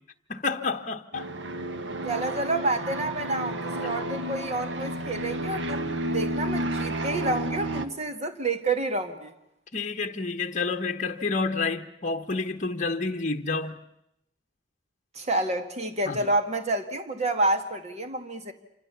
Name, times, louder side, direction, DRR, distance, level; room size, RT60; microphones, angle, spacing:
voice 1, 0.3-1.3 9.7-13.8 16.1-16.3, left 4 dB, 40° left, 1.1 m, -29 dB
sound 1, 1.1-7.9, right 1 dB, 75° right, 1.6 m, -31 dB
voice 2, 2.0-9.3 15.2-18.5, right 2 dB, 35° right, 2.1 m, -29 dB
27.5 x 26.0 x 7.0 m
head